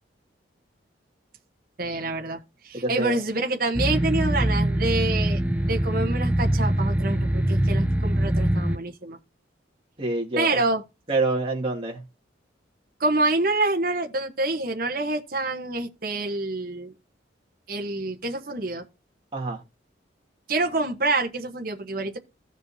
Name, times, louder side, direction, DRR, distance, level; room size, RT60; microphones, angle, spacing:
voice 1, 1.8-2.4 2.6-9.2 10.4-10.8 13.0-16.9 17.7-18.8 20.5-22.2, right 2 dB, 50° right, 1.1 m, -27 dB
voice 2, 2.7-3.2 10.0-10.6 11.1-12.0 19.3-19.6, right 2 dB, 30° right, 2.2 m, -26 dB
sound 1, 3.7-8.8, right 1 dB, 5° right, 0.4 m, -23 dB
16.0 x 5.3 x 2.8 m
head